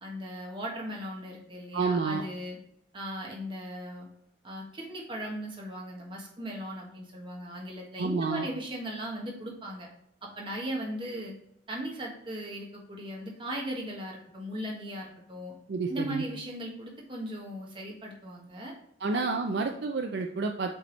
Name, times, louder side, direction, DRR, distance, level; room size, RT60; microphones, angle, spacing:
voice 1, 0.0-2.6 2.9-4.1 4.4-9.9 10.2-11.3 11.7-15.5 15.9-18.7 19.1-19.3, equal, 25° right, -2 dB, 1.4 m, -38 dB
voice 2, 1.7-2.2 8.0-8.5 15.7-16.2 19.0-20.7, right 4 dB, 60° right, 4 dB, 0.4 m, -29 dB
7.7 x 3.4 x 3.9 m, 0.75 s
head